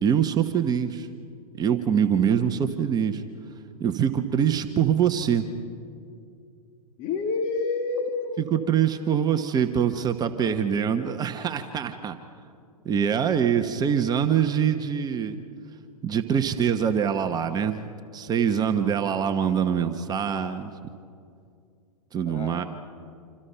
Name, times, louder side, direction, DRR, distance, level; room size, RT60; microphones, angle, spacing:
voice 1, 0.0-1.1 1.6-3.2 3.8-5.5 8.4-12.2 12.8-15.4 16.0-20.7 22.1-22.6, right 8 dB, 20° right, 7 dB, 1.1 m, -24 dB
voice 2, 7.0-8.5 22.3-22.6, left 4 dB, 35° left, 4 dB, 2.0 m, -28 dB
27.0 x 26.0 x 5.7 m, 2.4 s
hypercardioid pair, 120°, 19 cm